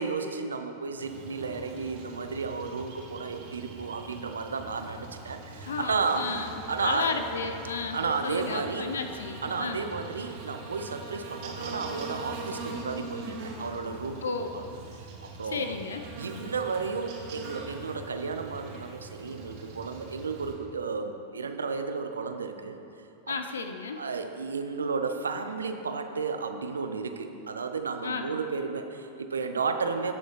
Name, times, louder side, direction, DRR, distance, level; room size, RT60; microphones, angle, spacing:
voice 1, 0.0-6.3 6.7-7.1 7.9-9.0 9.4-14.6 14.9-15.8 16.2-22.8 23.3-23.4 24.0-30.1, right 4 dB, 70° right, 7 dB, 0.6 m, -33 dB
Buzz, 1.0-20.5, right 3 dB, 45° right, 1.7 m, -42 dB
voice 2, 5.7-6.5 6.8-9.8 14.2-14.5 15.5-16.0 23.3-24.0 28.0-28.2, left 4 dB, 70° left, 7 dB, 0.6 m, -33 dB
16.0 x 6.3 x 3.1 m, 2.8 s
figure-of-eight pair, 90°, 0 cm